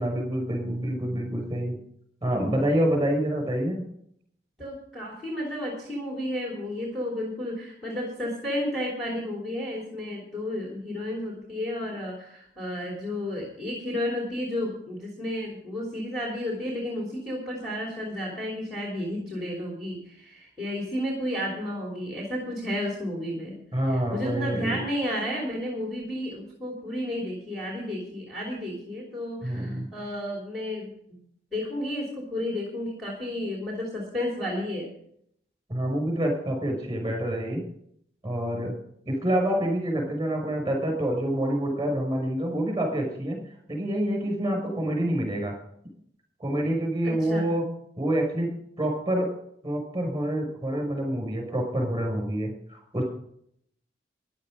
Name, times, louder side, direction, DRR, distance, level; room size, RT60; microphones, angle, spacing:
voice 1, 0.0-1.8 2.2-3.9 23.7-24.8 29.4-29.9 35.7-37.6 38.2-38.7 39.1-43.4 43.7-45.6 46.4-47.7 48.0-49.3 49.6-53.0, right 1 dB, 20° right, 3 dB, 5.9 m, -27 dB
voice 2, 4.6-23.6 23.9-31.2 31.5-34.9 47.0-47.5, left 1 dB, ahead, -3 dB, 3.2 m, -32 dB
14.0 x 11.0 x 5.2 m, 0.69 s
head